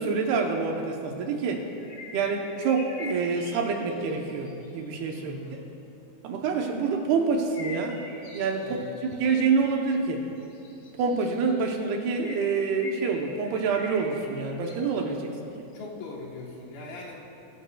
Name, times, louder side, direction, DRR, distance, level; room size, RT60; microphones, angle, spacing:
voice 1, 0.0-1.6 2.1-5.4 6.2-8.0 8.3-8.8 9.2-10.2 11.0-15.3, right 4 dB, 75° right, 2 dB, 2.8 m, -27 dB
sound 1, 1.8-5.2 7.5-15.2 15.7-15.8, left 3 dB, 45° left, 2.3 m, -45 dB
voice 2, 5.1-5.6 8.6-8.9 15.7-17.2, left 3 dB, 70° left, -2 dB, 2.9 m, -40 dB
22.0 x 14.5 x 2.3 m, 2.8 s
omnidirectional pair, 4.9 m